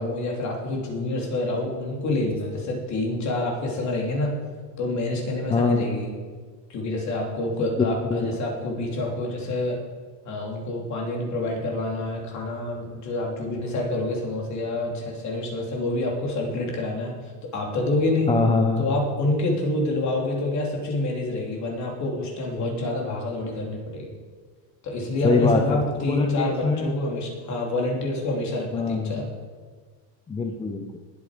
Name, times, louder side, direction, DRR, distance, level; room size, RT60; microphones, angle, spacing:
voice 1, 0.0-4.4 4.8-6.1 6.7-9.8 10.2-17.2 17.4-18.3 18.8-24.1 24.8-29.3, left 2 dB, 40° left, 0 dB, 3.2 m, -27 dB
voice 2, 5.5-5.8 7.8-8.3 18.3-18.8 25.2-27.0 28.7-29.2 30.3-31.0, left 3 dB, 10° left, 4 dB, 0.6 m, -23 dB
19.5 x 8.6 x 5.1 m, 1.5 s
cardioid pair, 150°, 45 cm